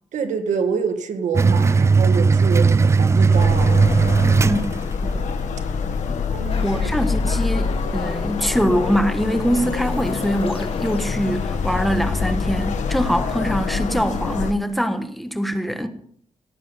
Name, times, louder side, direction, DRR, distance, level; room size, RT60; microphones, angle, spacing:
voice 1, 0.1-3.8 6.3-6.9, right 6 dB, 85° right, 2.0 m, -26 dB
sound 1, 1.3-5.2, right 4 dB, 25° right, 0.4 m, -16 dB
sound 2, 3.3-14.5, left 5 dB, 80° left, 1.6 m, -25 dB
voice 2, 4.4-4.7 6.1-6.3 6.6-15.9, equal, ahead, 1.3 m, -23 dB
sound 3, 6.5-11.9, left 5 dB, 50° left, 2.0 m, -37 dB
18.0 x 7.5 x 5.5 m
cardioid pair, 120°, 12 cm